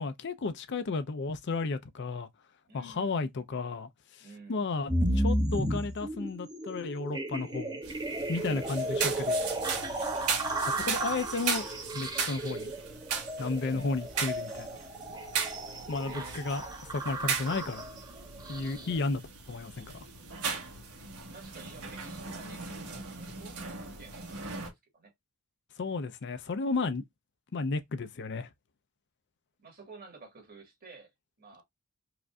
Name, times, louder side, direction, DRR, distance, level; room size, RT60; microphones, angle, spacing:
voice 1, 0.0-2.3 2.7-7.8 8.3-9.4 10.7-11.7 11.9-12.7 13.4-14.8 15.9-16.6 16.9-17.8 18.5-19.2 19.5-19.9 25.8-27.0 27.5-28.5, left 3 dB, 50° left, 0.5 m, -33 dB
voice 2, 2.7-3.2 4.2-4.7 8.4-8.8 10.7-11.1 13.7-13.9 15.7-16.4 21.3-24.6 24.9-25.1 29.6-31.1 31.4-31.6, right 3 dB, 40° right, 1.9 m, -51 dB
sound 1, 4.9-19.0, right 1 dB, 20° right, 0.7 m, -34 dB
sound 2, 7.8-24.7, right 6 dB, 85° right, 1.4 m, -37 dB
4.9 x 2.5 x 2.2 m
head